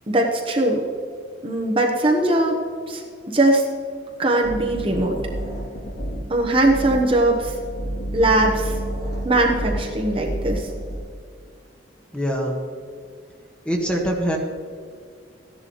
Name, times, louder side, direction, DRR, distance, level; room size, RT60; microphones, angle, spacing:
voice 1, 0.1-0.8 1.4-2.6 2.9-3.7 4.2-5.2 6.3-7.5 8.1-8.8 9.2-10.7, right 1 dB, 30° right, 0 dB, 1.1 m, -20 dB
sound 1, 4.4-11.0, right 1 dB, 70° left, 2.9 m, -30 dB
voice 2, 12.1-12.5 13.6-14.4, equal, 5° left, 0 dB, 1.4 m, -23 dB
14.5 x 11.0 x 3.1 m, 2.2 s
head